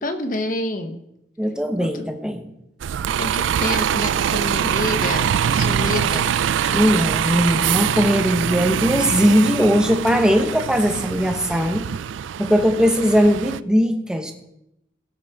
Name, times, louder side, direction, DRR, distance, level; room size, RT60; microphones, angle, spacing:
voice 1, 0.0-1.0 1.8-2.1 3.2-6.3, left 2 dB, 45° left, 7 dB, 1.1 m, -28 dB
voice 2, 1.4-2.4 6.7-11.9 12.4-14.3, equal, 5° right, 4 dB, 1.0 m, -19 dB
Bus, 2.8-13.6, right 9 dB, 75° right, 0.3 m, -23 dB
17.0 x 7.4 x 3.6 m, 0.81 s
head